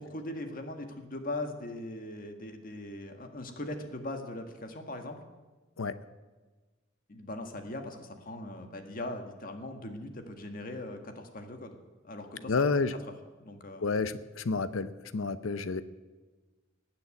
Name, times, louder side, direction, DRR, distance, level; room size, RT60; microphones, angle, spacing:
voice 1, 0.0-5.2 7.1-11.8 12.0-12.5 13.4-13.8, left 1 dB, 45° left, 5 dB, 1.7 m, -40 dB
voice 2, 12.5-12.9 13.8-15.8, left 4 dB, 85° left, 13 dB, 0.7 m, -30 dB
19.0 x 6.9 x 9.5 m, 1.3 s
head